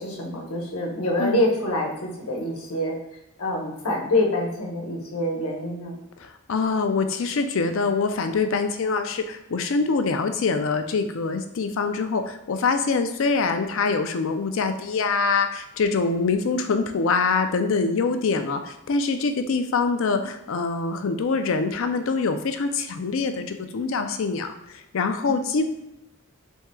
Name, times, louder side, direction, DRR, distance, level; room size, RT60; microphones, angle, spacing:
voice 1, 0.0-3.0 3.4-6.0 25.3-25.4, left 1 dB, 85° left, -1 dB, 1.0 m, -26 dB
voice 2, 6.2-25.7, left 4 dB, 65° left, 7 dB, 0.4 m, -24 dB
4.3 x 3.5 x 2.3 m, 0.89 s
head